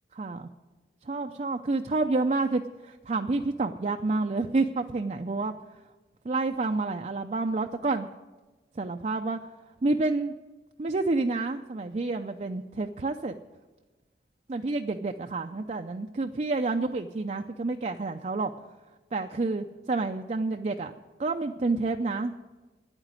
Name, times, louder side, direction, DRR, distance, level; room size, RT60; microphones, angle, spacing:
voice 1, 0.2-0.5 1.0-5.5 6.2-8.1 8.8-9.4 9.8-10.3 10.8-13.3 14.5-18.5 19.1-20.9 21.2-22.3, right 3 dB, 40° right, 5 dB, 0.5 m, -29 dB
10.5 x 9.0 x 9.5 m, 1.2 s
head